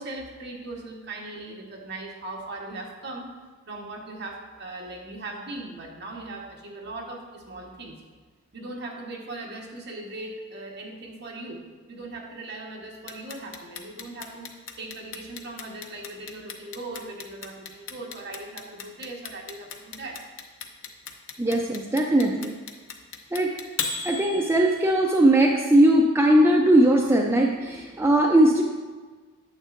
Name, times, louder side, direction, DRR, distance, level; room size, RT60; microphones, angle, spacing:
voice 1, 0.0-3.3 3.7-8.0 8.5-20.2, right 2 dB, 50° right, -1 dB, 1.2 m, -39 dB
Clock, 13.1-25.1, left 5 dB, 65° left, 0.7 m, -35 dB
voice 2, 21.4-22.5 23.3-23.5 24.0-28.6, right 1 dB, 10° right, 0 dB, 0.4 m, -19 dB
8.9 x 7.4 x 2.6 m, 1.4 s
head